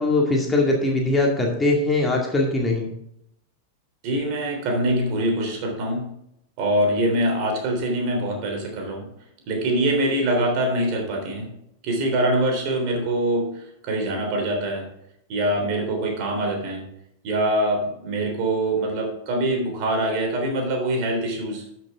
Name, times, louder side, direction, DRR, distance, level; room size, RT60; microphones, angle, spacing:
voice 1, 0.0-2.9, left 2 dB, 10° left, -1 dB, 2.1 m, -21 dB
voice 2, 4.0-6.1 6.6-9.1 9.5-11.5 11.8-14.9 15.3-16.9 17.2-21.6, right 1 dB, 45° right, 2 dB, 3.4 m, -24 dB
13.0 x 6.2 x 3.6 m, 0.76 s
figure-of-eight pair, 90°, 0 cm